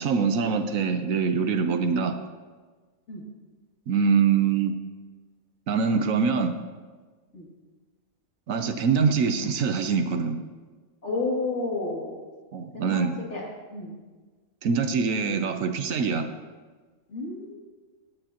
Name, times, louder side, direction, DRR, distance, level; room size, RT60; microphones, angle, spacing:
voice 1, 0.0-2.2 3.9-4.8 5.7-6.6 8.5-10.4 12.5-13.1 14.6-16.3, right 5 dB, 70° right, 7 dB, 1.1 m, -24 dB
voice 2, 11.0-12.1 12.7-13.4 13.7-13.9 17.1-17.6, left 3 dB, 55° left, -4 dB, 2.8 m, -31 dB
16.5 x 8.8 x 2.9 m, 1.4 s
omnidirectional pair, 1.5 m